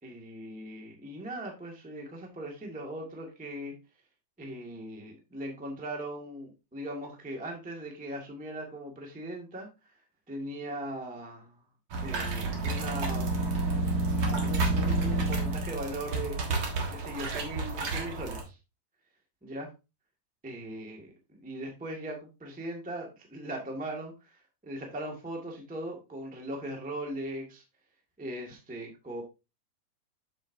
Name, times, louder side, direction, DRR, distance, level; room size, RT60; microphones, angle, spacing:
voice 1, 0.0-3.7 4.4-9.7 10.3-11.6 12.0-13.4 14.3-16.6 16.9-18.6 19.4-19.7 20.4-21.1 21.4-27.6 28.2-29.2, right 1 dB, 5° right, 1 dB, 0.8 m, -39 dB
sound 1, 11.9-18.4, right 2 dB, 50° right, 1.8 m, -30 dB
7.6 x 7.5 x 2.7 m, 0.27 s
omnidirectional pair, 3.9 m